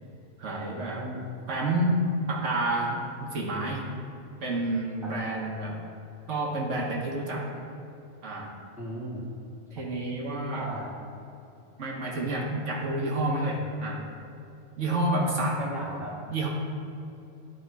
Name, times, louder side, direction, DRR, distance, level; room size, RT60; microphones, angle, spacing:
voice 1, 0.4-1.1 1.5-2.0 2.3-3.9 4.4-5.8 6.3-7.5 8.2-8.6 9.7-10.7 11.8-14.0 14.8-15.6 16.3-16.5, right 1 dB, 80° right, -2 dB, 1.4 m, -29 dB
voice 2, 0.9-1.3 5.0-5.1 8.8-9.2 9.8-9.9 10.5-11.0 15.2-16.1, equal, ahead, -4 dB, 1.3 m, -36 dB
10.5 x 3.6 x 4.6 m, 2.7 s
omnidirectional pair, 1.2 m